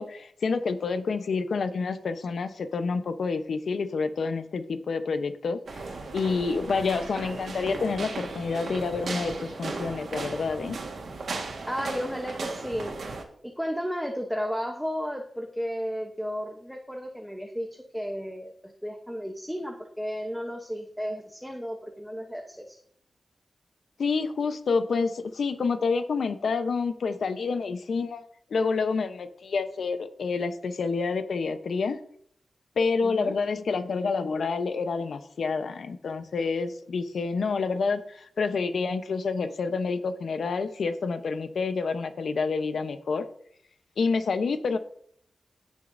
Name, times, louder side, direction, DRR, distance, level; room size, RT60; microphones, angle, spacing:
voice 1, 0.0-10.8 24.0-32.0 32.8-43.2 44.0-44.8, left 4 dB, 75° left, 9 dB, 0.9 m, -28 dB
sound 1, 5.7-13.2, right 3 dB, 75° right, 1.7 m, -36 dB
voice 2, 11.7-13.0 13.4-18.5 18.8-22.8 33.0-33.3, equal, ahead, 3 dB, 0.9 m, -33 dB
17.0 x 6.4 x 2.7 m, 0.65 s
wide cardioid pair, 130°, 0 cm